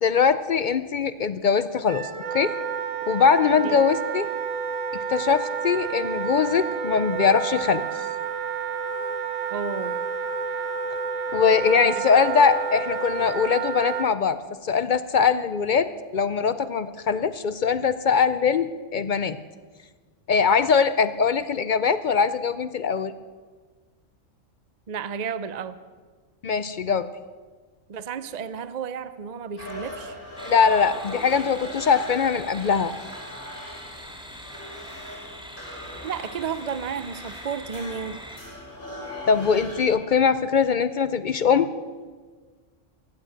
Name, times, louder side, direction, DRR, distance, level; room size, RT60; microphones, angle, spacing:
voice 1, 0.0-2.5 3.1-4.3 5.1-7.8 11.3-14.4 14.6-19.4 20.3-23.1 26.4-27.1 30.5-32.9 39.3-41.7, left 6 dB, 60° left, 13 dB, 0.5 m, -22 dB
Wind instrument woodwind instrument, 1.9-14.1, right 6 dB, 80° right, 1.3 m, -30 dB
voice 2, 9.5-10.0 24.9-25.8 27.9-30.2 36.0-38.2, right 6 dB, 45° right, 13 dB, 0.5 m, -32 dB
sound 1, 29.6-39.9, left 1 dB, 40° left, 3.5 m, -40 dB
sound 2, 30.4-38.4, equal, 5° right, 1.7 m, -42 dB
15.5 x 9.2 x 8.9 m, 1.5 s
omnidirectional pair, 1.3 m